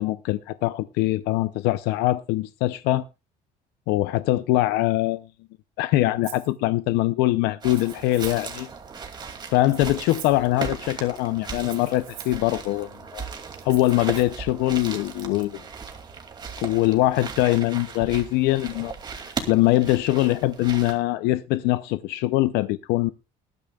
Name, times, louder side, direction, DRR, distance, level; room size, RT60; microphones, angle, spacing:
voice 1, 0.0-3.0 3.9-5.3 5.8-8.7 9.5-13.3 13.6-15.6 16.6-23.1, left 16 dB, 90° left, 0.6 m, -23 dB
Rattle (instrument), 6.2-6.5 7.6-8.5 9.6-10.5 11.6-12.4 13.6-14.2, right 13 dB, 75° right, 3.8 m, -43 dB
sound 1, 7.6-20.9, right 5 dB, 25° right, 2.5 m, -37 dB
19.5 x 12.5 x 2.3 m
cardioid pair, 150°, 17 cm